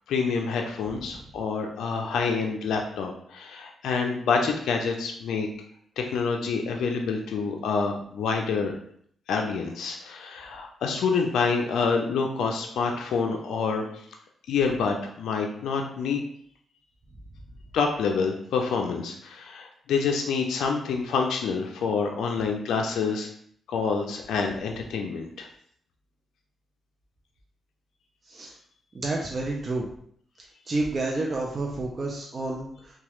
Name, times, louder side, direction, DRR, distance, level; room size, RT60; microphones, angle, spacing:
voice 1, 0.1-5.5 6.0-8.7 9.3-13.8 14.5-16.2 17.7-23.3 23.7-25.5, left 5 dB, 85° left, 2 dB, 0.3 m, -27 dB
voice 2, 28.9-29.9 30.7-33.0, right 2 dB, 40° right, -1 dB, 0.4 m, -29 dB
2.8 x 2.2 x 3.0 m, 0.65 s
cardioid pair, 70°, 0 cm